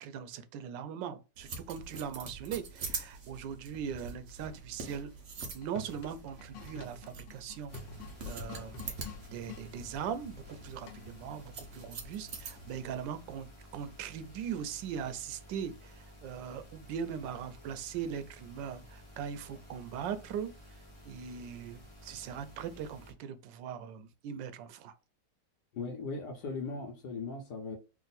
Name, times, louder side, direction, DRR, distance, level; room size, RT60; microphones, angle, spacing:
voice 1, 0.0-5.1 5.5-7.8 8.2-8.9 9.3-20.5 21.0-24.9, right 8 dB, 85° right, 1.3 m, -40 dB
sound 1, 1.4-12.8, right 4 dB, 55° right, 1.0 m, -45 dB
sound 2, 5.4-9.7 10.9-11.3, left 4 dB, 90° left, 1.4 m, -49 dB
sound 3, 7.7-23.1, left 1 dB, 25° left, 0.8 m, -54 dB
voice 2, 25.7-27.8, left 4 dB, 70° left, 1.3 m, -38 dB
3.5 x 2.5 x 3.9 m
omnidirectional pair, 1.9 m